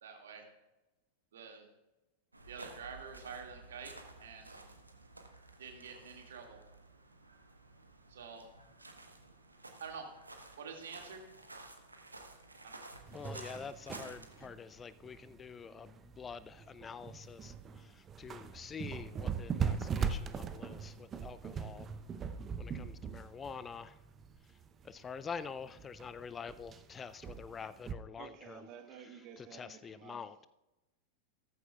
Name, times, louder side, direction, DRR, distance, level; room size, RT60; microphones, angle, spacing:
voice 1, 0.0-0.5 1.3-1.7 2.5-3.9 4.2-4.6 5.6-6.6 8.1-8.5 9.8-10.0 10.6-11.2 12.6-12.9, right 6 dB, 65° right, 2.1 m, -47 dB
sound 1, 2.3-14.5, right 2 dB, 80° right, 1.1 m, -53 dB
voice 2, 13.1-21.9 22.6-24.0 24.8-28.7 29.4-30.5, left 6 dB, 20° left, 0.4 m, -46 dB
sound 2, 13.1-27.9, right 6 dB, 25° right, 0.7 m, -40 dB
voice 3, 28.2-30.3, right 8 dB, 40° right, 1.2 m, -52 dB
15.0 x 14.0 x 2.4 m
figure-of-eight pair, 90°, 0 cm